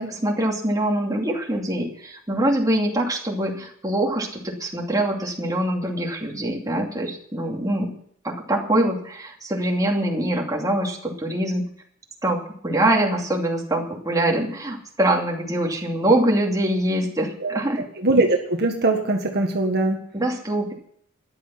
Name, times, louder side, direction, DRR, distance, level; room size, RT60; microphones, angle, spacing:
voice 1, 0.0-7.9 8.2-11.6 12.2-17.8 20.1-20.7, right 1 dB, 15° right, 0 dB, 2.7 m, -24 dB
voice 2, 18.0-20.0, right 2 dB, 50° right, 2 dB, 1.7 m, -21 dB
14.0 x 11.0 x 5.9 m, 0.64 s
head